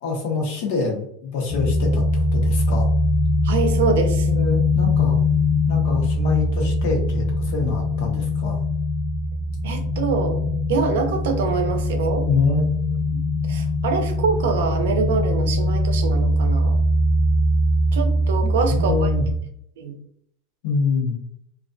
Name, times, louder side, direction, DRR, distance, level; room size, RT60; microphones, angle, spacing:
voice 1, 0.0-2.9 4.2-5.2 5.7-8.6 12.3-12.6 18.4-19.3 20.6-21.1, left 4 dB, 60° left, 1 dB, 0.8 m, -25 dB
sound 1, 1.5-19.3, left 1 dB, 30° left, 0.7 m, -21 dB
voice 2, 3.4-4.3 9.6-10.4 10.7-12.3 13.1-13.2 13.5-16.8 17.9-19.1 19.8-20.0, right 4 dB, 85° right, 5 dB, 0.5 m, -24 dB
2.3 x 2.2 x 2.5 m, 0.69 s
supercardioid pair, 155°, 0 cm